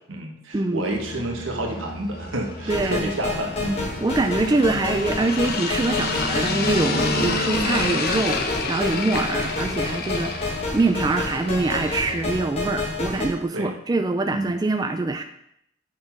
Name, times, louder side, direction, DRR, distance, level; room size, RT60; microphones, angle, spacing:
voice 1, 0.0-3.9 13.5-13.7 14.3-14.5, right 1 dB, 85° right, 1 dB, 1.4 m, -29 dB
sound 1, 0.9-12.4, left 3 dB, 50° left, 0.8 m, -30 dB
sound 2, 2.7-13.3, left 3 dB, 30° left, 1.4 m, -29 dB
voice 2, 2.7-3.1 4.0-15.2, right 2 dB, 20° right, 7 dB, 0.3 m, -24 dB
6.2 x 4.3 x 5.9 m, 0.76 s
head